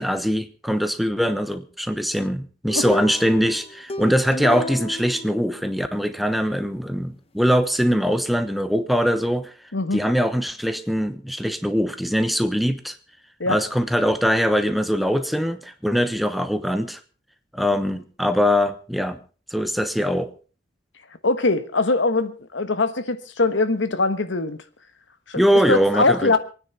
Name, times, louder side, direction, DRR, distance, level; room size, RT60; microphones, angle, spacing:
voice 1, 0.0-9.5 9.9-13.0 13.5-17.0 17.5-19.2 19.5-20.3 25.4-26.3, equal, ahead, 9 dB, 1.0 m, -22 dB
sound 1, 2.7-6.1, left 2 dB, 35° left, 0.9 m, -31 dB
voice 2, 9.7-10.1 13.4-13.6 21.2-24.6 25.3-25.4 25.7-26.4, left 3 dB, 75° left, 11 dB, 1.3 m, -22 dB
26.5 x 9.7 x 4.1 m, 0.36 s
head